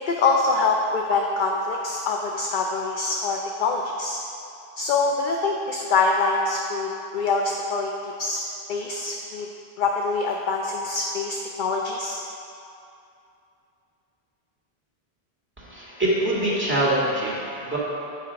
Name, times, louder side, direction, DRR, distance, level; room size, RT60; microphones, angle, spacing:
voice 1, 0.0-4.2 4.8-8.4 8.7-9.5 9.8-12.2, left 3 dB, 60° left, 1 dB, 0.6 m, -24 dB
voice 2, 15.6-17.8, right 1 dB, 10° right, -7 dB, 1.9 m, -24 dB
8.2 x 5.1 x 5.1 m, 2.7 s
omnidirectional pair, 1.1 m